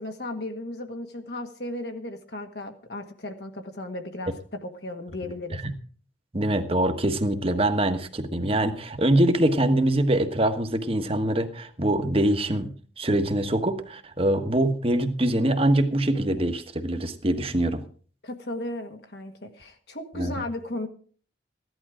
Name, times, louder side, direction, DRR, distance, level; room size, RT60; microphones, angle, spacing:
voice 1, 0.0-5.6 18.2-20.9, left 1 dB, 60° left, 4 dB, 1.7 m, -35 dB
voice 2, 6.3-17.8 20.1-20.3, right 1 dB, 30° right, 8 dB, 1.3 m, -24 dB
15.5 x 11.5 x 4.9 m, 0.44 s
head